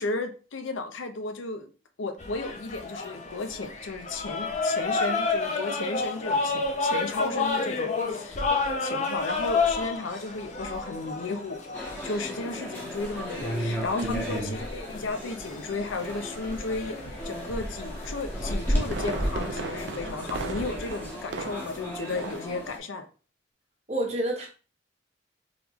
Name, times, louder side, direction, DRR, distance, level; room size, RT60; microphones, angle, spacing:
voice 1, 0.0-1.7 2.0-8.5 8.8-17.0 17.2-23.1, left 3 dB, 80° left, 0.6 m, -34 dB
sound 1, 2.2-21.0, left 4 dB, 35° left, 0.6 m, -32 dB
sound 2, 11.7-22.8, equal, 10° left, 1.1 m, -34 dB
Fireworks, 18.6-21.9 22.2-22.6 22.9-23.0, right 4 dB, 65° right, 0.5 m, -37 dB
voice 2, 23.9-24.5, right 1 dB, 35° right, 1.0 m, -28 dB
3.7 x 3.5 x 3.0 m
head